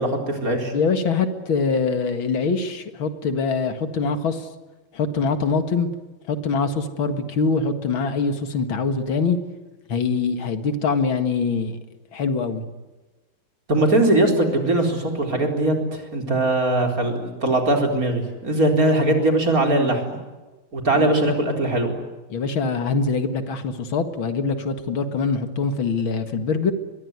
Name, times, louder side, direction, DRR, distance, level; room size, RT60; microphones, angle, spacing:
voice 1, 0.0-0.7 13.7-20.2 20.7-22.0, right 1 dB, 45° right, 3 dB, 4.6 m, -20 dB
voice 2, 0.7-4.5 4.9-5.9 6.3-9.4 9.9-11.8 12.1-12.6 21.0-21.1 22.3-26.7, left 4 dB, 75° left, 9 dB, 2.6 m, -23 dB
24.0 x 21.5 x 9.5 m, 1.2 s
omnidirectional pair, 2.2 m